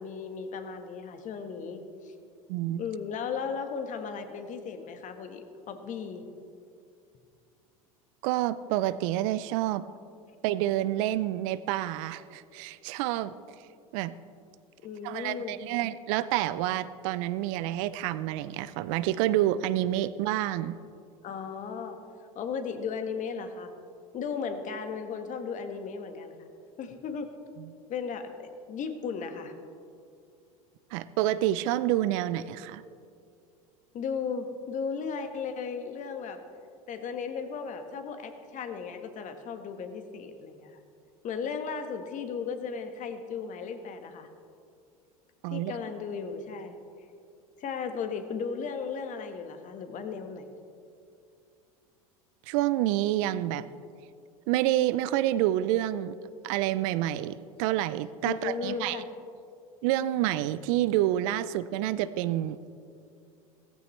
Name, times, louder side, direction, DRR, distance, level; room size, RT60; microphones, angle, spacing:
voice 1, 0.0-2.1 2.8-6.2 14.8-15.6 21.2-22.0 22.3-23.7 24.1-26.5 26.8-27.3 27.9-29.5 33.9-36.4 36.9-40.8 41.2-44.3 45.5-46.8 47.6-50.6 58.2-59.1, left 6 dB, 45° left, 7 dB, 1.5 m, -36 dB
voice 2, 2.5-2.8 8.2-9.8 10.4-13.3 13.9-14.1 15.0-20.8 30.9-32.8 45.4-45.7 52.5-53.6 54.5-56.2 56.4-59.0 59.8-62.7, right 13 dB, 60° right, 16 dB, 0.6 m, -28 dB
16.5 x 14.5 x 3.3 m, 2.4 s
hypercardioid pair, 80°, 19 cm